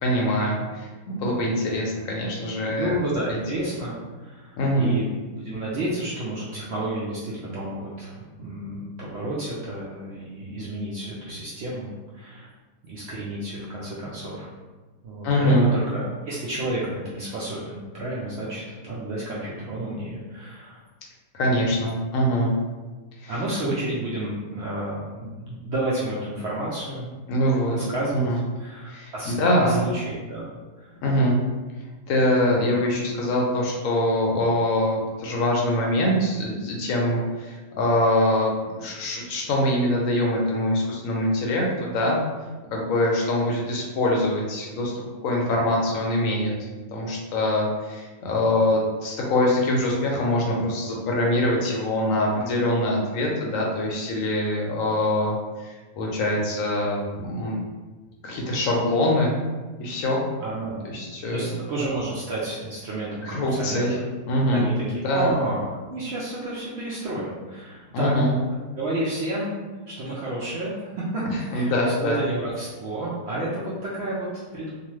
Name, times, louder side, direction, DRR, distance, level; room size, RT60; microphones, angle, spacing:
voice 1, 0.0-3.0 3.3-3.4 4.6-4.9 15.2-15.7 21.3-22.5 23.2-23.3 23.6-23.7 27.3-27.8 28.2-28.4 28.9-29.8 31.0-31.4 32.1-42.2 42.7-44.9 45.2-46.5 46.9-57.6 58.2-59.3 59.8-60.2 60.8-61.5 63.2-64.0 64.3-65.3 67.9-68.3 71.3-72.2, left 1 dB, 70° left, -2 dB, 0.9 m, -24 dB
voice 2, 2.7-5.1 5.4-12.5 12.8-14.5 15.0-20.8 21.9-22.0 23.3-27.1 27.7-28.3 28.6-30.4 30.8-31.0 32.5-32.7 60.4-60.8 61.3-64.0 64.5-68.1 68.7-69.5 69.9-70.8 71.1-71.2 71.5-71.7 72.0-74.7, right 1 dB, 65° right, -7 dB, 0.6 m, -31 dB
2.9 x 2.2 x 3.0 m, 1.3 s
omnidirectional pair, 1.6 m